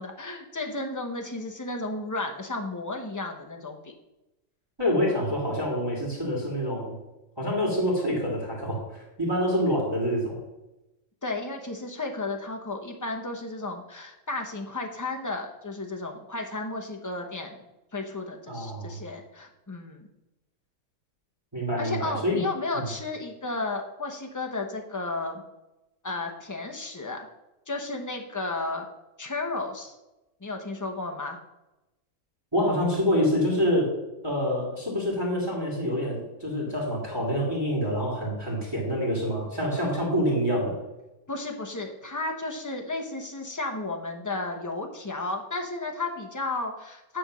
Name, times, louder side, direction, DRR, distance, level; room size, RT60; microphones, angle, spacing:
voice 1, 0.0-3.9 11.2-17.6 17.9-20.1 21.8-25.4 26.0-27.3 27.7-28.8 29.2-29.9 30.4-31.4 41.3-47.2, left 2 dB, 15° left, 3 dB, 0.8 m, -33 dB
voice 2, 4.8-7.0 7.4-8.8 9.2-10.4 18.5-19.0 21.5-22.4 22.7-22.9 32.5-33.9 34.2-40.8, equal, 15° right, -4 dB, 2.1 m, -26 dB
9.6 x 3.5 x 6.1 m, 0.97 s
omnidirectional pair, 1.5 m